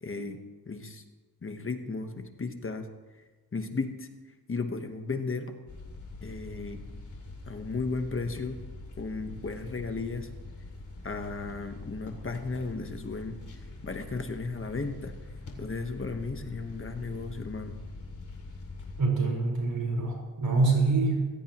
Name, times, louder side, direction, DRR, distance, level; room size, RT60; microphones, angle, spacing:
voice 1, 0.0-0.4 0.7-1.0 1.4-3.2 3.5-5.5 6.2-6.8 7.5-8.6 9.0-10.3 11.0-15.1 15.6-17.8, left 3 dB, 30° left, 6 dB, 1.1 m, -35 dB
sound 1, 5.7-19.0, left 2 dB, 50° left, 2.6 m, -44 dB
voice 2, 19.0-21.2, right 3 dB, 60° right, -1 dB, 4.6 m, -25 dB
24.0 x 16.0 x 3.0 m, 1.2 s
wide cardioid pair, 150°, 40 cm